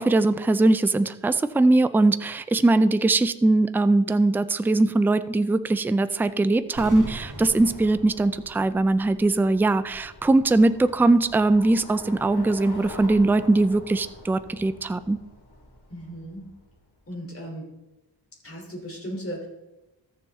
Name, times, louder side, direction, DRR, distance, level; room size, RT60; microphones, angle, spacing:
voice 1, 0.0-15.2, right 2 dB, 5° right, 13 dB, 0.3 m, -21 dB
Bicycle, 6.1-17.0, left 2 dB, 65° left, 2.6 m, -46 dB
sound 1, 6.7-9.6 9.9-10.0, right 2 dB, 45° right, 2.7 m, -40 dB
voice 2, 15.9-16.4 17.1-17.7 18.4-19.5, equal, 30° left, -2 dB, 3.2 m, -36 dB
14.0 x 7.0 x 3.6 m, 0.99 s
wide cardioid pair, 90°, 42 cm